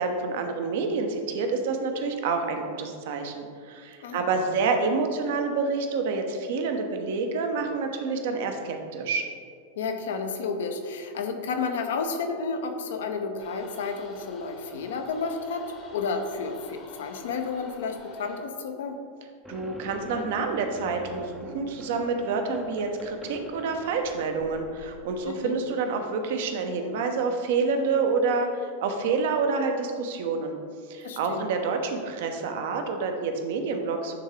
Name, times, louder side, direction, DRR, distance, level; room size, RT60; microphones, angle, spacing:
voice 1, 0.0-9.3 19.5-30.6 30.9-34.1, right 4 dB, 55° right, 5 dB, 0.7 m, -28 dB
voice 2, 9.8-19.0 25.3-25.6 31.0-31.5, left 4 dB, 60° left, 5 dB, 0.6 m, -31 dB
sound 1, 13.4-18.4, left 2 dB, 35° left, 1.0 m, -48 dB
sound 2, 19.5-25.5, equal, 5° left, 0.6 m, -45 dB
9.6 x 3.6 x 3.2 m, 2.2 s
figure-of-eight pair, 90°, 0 cm